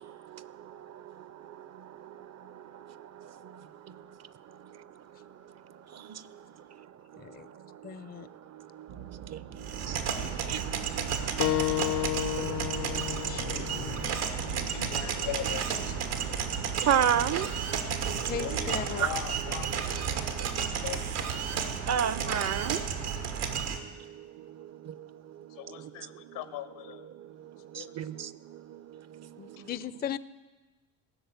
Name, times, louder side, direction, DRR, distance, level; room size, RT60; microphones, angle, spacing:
voice 1, 0.0-14.8 16.1-18.6 19.0-19.1 20.1-20.8 21.7-26.3 27.1-29.7, right 9 dB, 35° right, 0.5 m, -37 dB
voice 2, 7.2-7.5 7.8-8.3 12.4-14.0 18.0-19.0 29.4-30.2, left 9 dB, 20° left, 0.4 m, -39 dB
sound 1, 8.9-16.8, right 8 dB, 70° right, 1.4 m, -47 dB
sound 2, 9.6-23.8, right 7 dB, 90° right, 1.4 m, -32 dB
sound 3, 11.4-16.5, left 17 dB, 60° left, 0.6 m, -34 dB
voice 3, 14.6-16.0 18.4-21.0 25.5-27.1 27.7-28.2 29.6-29.7, left 13 dB, 80° left, 1.0 m, -41 dB
17.0 x 6.3 x 8.2 m
supercardioid pair, 70°, 45 cm